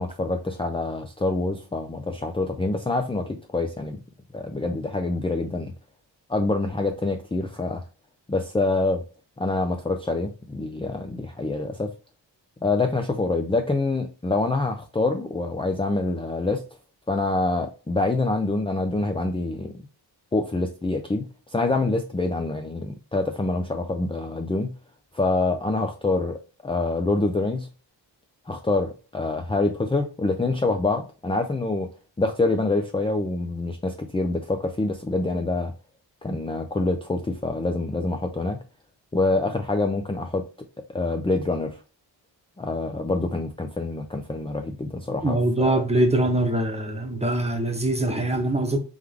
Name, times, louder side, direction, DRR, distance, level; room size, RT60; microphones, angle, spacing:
voice 1, 0.0-4.0 4.3-5.7 6.3-7.9 8.3-9.0 9.4-11.9 12.6-16.6 17.1-19.8 20.3-24.7 25.1-27.7 28.5-31.9 32.2-35.7 36.2-38.6 39.1-40.4 40.9-41.8 42.6-45.4 45.6-45.8, left 2 dB, 10° left, 0.5 m, -26 dB
voice 2, 45.2-48.8, right 1 dB, 15° right, 1.0 m, -23 dB
3.6 x 3.2 x 3.5 m
cardioid pair, 60°, 45 cm